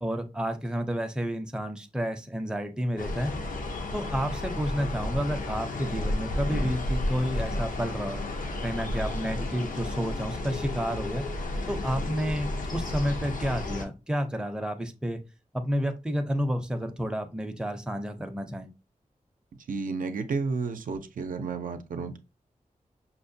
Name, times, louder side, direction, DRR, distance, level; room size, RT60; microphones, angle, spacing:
voice 1, 0.0-3.3 3.9-8.2 8.6-11.2 11.7-15.2 15.5-18.7, equal, 5° right, 5 dB, 0.5 m, -30 dB
sound 1, 3.0-13.8, left 2 dB, 75° left, 0.7 m, -32 dB
voice 2, 19.7-22.2, right 4 dB, 80° right, 7 dB, 0.5 m, -31 dB
5.6 x 2.1 x 2.6 m, 0.27 s
wide cardioid pair, 95°, 14 cm